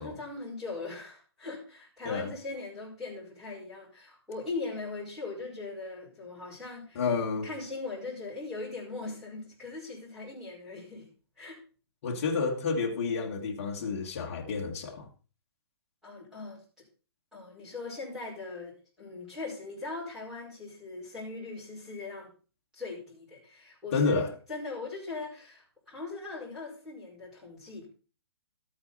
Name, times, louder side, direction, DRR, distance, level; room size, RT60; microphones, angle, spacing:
voice 1, 0.0-7.1 7.4-11.1 11.4-11.6 16.0-16.6 17.3-22.3 22.7-24.2 24.5-27.9, left 3 dB, 5° right, 5.1 m, -40 dB
voice 2, 7.0-7.5 12.0-15.1 23.9-24.3, left 4 dB, 30° left, 1.9 m, -30 dB
13.0 x 8.6 x 4.2 m
hypercardioid pair, 180°, 14 cm